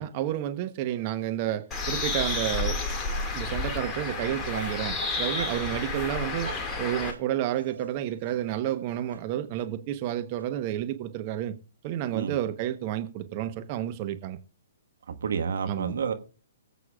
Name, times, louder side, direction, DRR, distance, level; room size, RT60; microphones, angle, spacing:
voice 1, 0.0-2.8 3.3-6.5 6.8-11.5 11.8-14.4 15.7-16.0, right 12 dB, 40° right, 1.0 m, -30 dB
Bird, 1.7-7.1, left 3 dB, 15° left, 2.1 m, -31 dB
Dog, 2.1-2.5 3.1-3.2 4.0-4.2 4.5-5.7 6.0-6.1 6.4-7.9 8.2-8.4 8.6-8.8 9.1-9.2 9.6-9.7 10.0-10.1 10.4-10.5, right 3 dB, 90° right, 3.0 m, -41 dB
voice 2, 15.1-16.1, right 6 dB, 65° right, 1.5 m, -30 dB
24.5 x 8.2 x 2.4 m
figure-of-eight pair, 125°, 0 cm